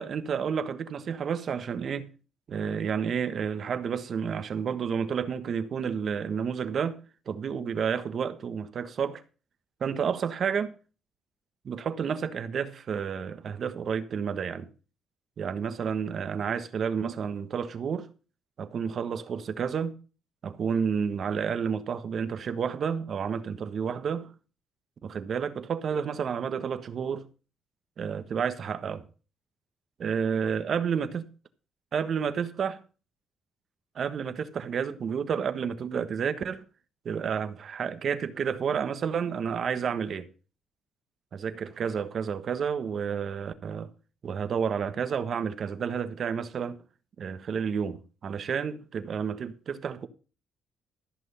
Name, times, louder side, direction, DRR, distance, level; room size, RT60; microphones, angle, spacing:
voice 1, 0.0-2.1 2.5-9.2 9.8-10.7 11.6-14.7 15.4-18.1 18.6-20.0 20.4-24.3 25.0-27.3 28.0-29.0 30.0-31.3 31.9-32.8 33.9-36.6 37.0-40.3 41.3-43.9 44.2-46.8 47.2-50.1, right 7 dB, 55° right, 1.3 m, -30 dB
14.0 x 6.2 x 5.6 m
cardioid pair, 90°, 0 cm